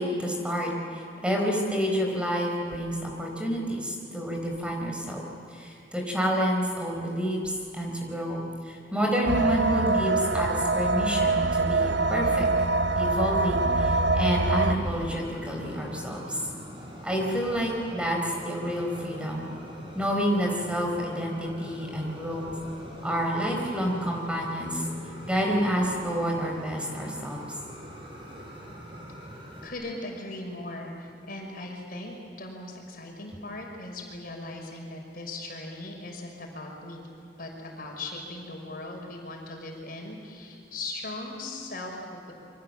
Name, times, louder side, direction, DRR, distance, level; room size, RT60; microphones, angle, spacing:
voice 1, 0.0-5.2 5.5-12.5 12.9-16.4 17.0-18.2 18.4-19.5 19.9-22.5 23.0-24.8 25.3-27.4, equal, 5° right, 0 dB, 4.2 m, -29 dB
sound 1, 9.3-14.7, right 3 dB, 70° right, 0.9 m, -24 dB
Fire, 14.7-29.7, equal, 30° right, 5.3 m, -43 dB
voice 2, 29.6-37.1 37.4-42.3, left 2 dB, 55° left, 1 dB, 5.8 m, -39 dB
28.5 x 25.0 x 7.6 m, 2.7 s
head